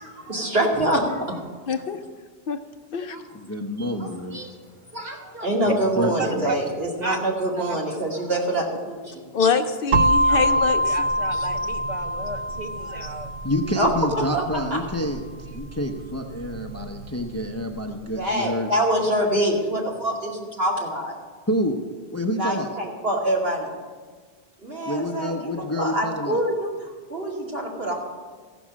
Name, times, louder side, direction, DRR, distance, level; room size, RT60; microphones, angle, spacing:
voice 1, 0.1-1.4 3.1-3.2 4.0-4.5 4.9-9.3 13.8-13.9 14.3-14.4 18.2-21.2 22.3-23.7 24.6-27.9, right 1 dB, 65° right, -3 dB, 2.6 m, -25 dB
voice 2, 1.7-2.0 2.5-2.6 2.9-3.2 9.3-11.0 11.3-11.5, left 5 dB, 60° left, 8 dB, 0.8 m, -25 dB
voice 3, 3.3-4.4 5.6-6.5 13.4-18.7 21.5-21.8 22.1-22.7 24.9-26.4, equal, 15° left, 3 dB, 0.7 m, -28 dB
voice 4, 6.2-6.5 7.0-7.2 7.5-7.8 10.3-10.4 10.8-13.3, right 3 dB, 40° right, 2 dB, 1.2 m, -34 dB
sound 1, 9.9-17.8, right 1 dB, 90° right, 0.9 m, -25 dB
15.0 x 6.1 x 7.4 m, 1.5 s
omnidirectional pair, 1.1 m